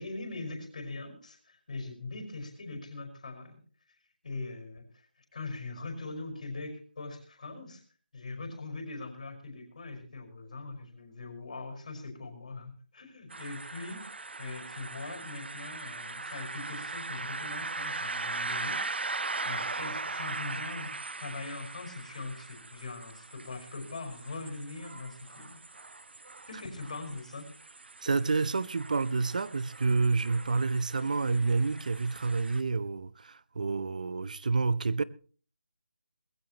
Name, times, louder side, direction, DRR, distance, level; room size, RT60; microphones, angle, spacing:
voice 1, 0.0-3.6 4.2-5.1 5.3-7.8 8.1-14.0 14.4-18.8 19.4-25.6 26.5-27.5, left 3 dB, 45° left, 5.2 m, -41 dB
sound 1, 13.3-32.6, right 3 dB, 80° right, 0.6 m, -40 dB
voice 2, 28.0-35.0, right 4 dB, 50° right, 0.7 m, -29 dB
20.0 x 15.5 x 3.0 m
figure-of-eight pair, 170°, 6 cm